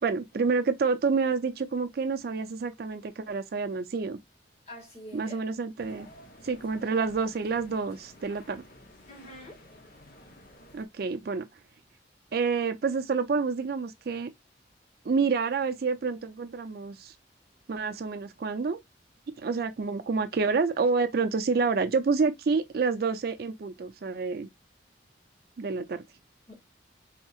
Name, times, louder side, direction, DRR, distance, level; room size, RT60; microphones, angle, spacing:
voice 1, 0.0-4.2 5.1-6.1 6.4-8.6 10.7-11.5 12.3-14.3 15.0-17.1 17.7-18.8 19.4-24.5 25.6-26.0, right 4 dB, 60° right, 0.4 m, -28 dB
voice 2, 4.7-5.4 9.1-9.6 19.5-19.6 26.5-26.6, left 1 dB, 35° left, 1.7 m, -45 dB
sound 1, 5.8-10.9, left 1 dB, 55° left, 0.8 m, -52 dB
3.5 x 2.8 x 2.3 m
head